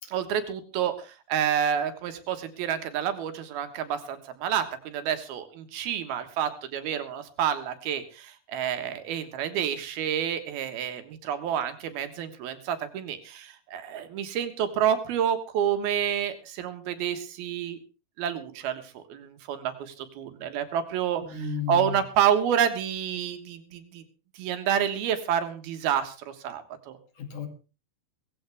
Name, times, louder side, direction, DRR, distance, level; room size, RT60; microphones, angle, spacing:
voice 1, 0.1-17.8 18.2-21.2 21.7-24.0 24.4-27.0, right 9 dB, 85° right, 8 dB, 3.3 m, -29 dB
voice 2, 21.2-22.0 27.2-27.5, left 6 dB, 55° left, 5 dB, 3.6 m, -33 dB
17.5 x 15.5 x 3.5 m, 0.34 s
omnidirectional pair, 4.3 m